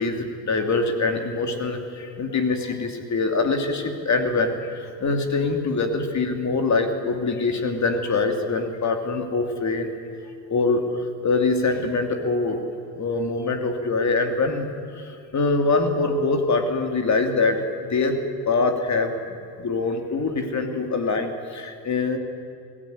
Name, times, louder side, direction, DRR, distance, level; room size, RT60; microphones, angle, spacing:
voice 1, 0.0-9.9 10.5-12.6 12.9-14.7 14.9-18.2 18.5-19.2 19.6-22.2, left 3 dB, 40° left, 5 dB, 3.0 m, -24 dB
22.5 x 17.0 x 9.5 m, 2.6 s
supercardioid pair, 85°, 41 cm